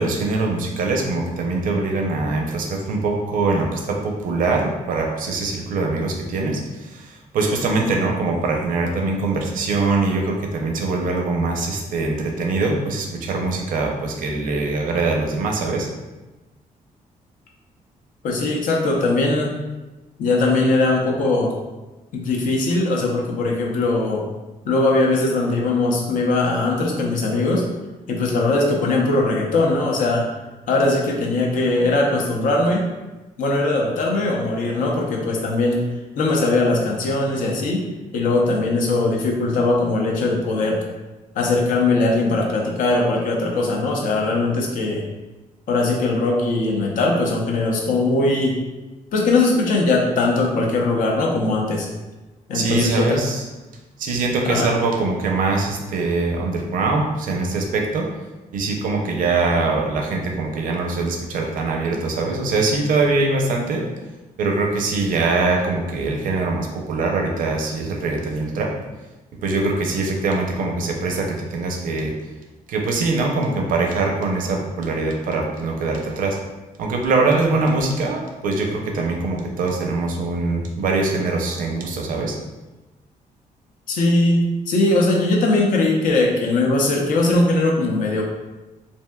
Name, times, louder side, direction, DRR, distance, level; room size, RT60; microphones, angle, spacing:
voice 1, 0.0-15.9 52.5-53.4 54.0-58.1 58.5-63.9 64.4-68.7 69.4-72.1 72.7-76.4 76.8-82.4, right 3 dB, 75° right, 1 dB, 0.5 m, -23 dB
voice 2, 18.2-19.5 20.2-21.5 22.1-24.2 24.7-27.6 28.1-30.3 30.7-32.8 33.4-35.8 36.2-37.9 38.1-40.8 41.4-45.0 45.7-48.6 49.1-51.9 52.5-53.2 54.5-54.7 83.9-88.2, left 2 dB, 70° left, -1 dB, 0.5 m, -20 dB
3.4 x 2.6 x 2.2 m, 1.1 s
wide cardioid pair, 180°, 14 cm